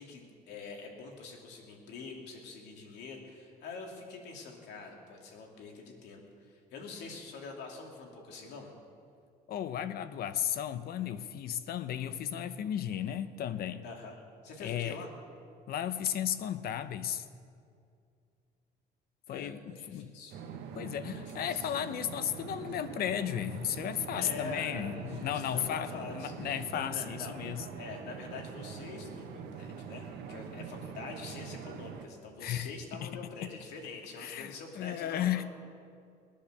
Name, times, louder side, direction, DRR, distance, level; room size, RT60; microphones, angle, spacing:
voice 1, 0.0-8.7 13.8-15.1 19.3-20.4 21.0-21.7 24.1-27.4 27.7-35.2, left 4 dB, 85° left, 1 dB, 2.9 m, -45 dB
voice 2, 9.5-13.8 14.6-15.0 15.7-17.2 19.3-20.1 20.7-27.6 30.5-30.6 32.4-32.7 33.0-33.1 34.2-35.4, left 10 dB, 65° left, 12 dB, 0.9 m, -34 dB
sound 1, 20.3-32.1, right 6 dB, 80° right, 1.4 m, -44 dB
20.5 x 10.5 x 6.7 m, 2.3 s
cardioid pair, 110°, 17 cm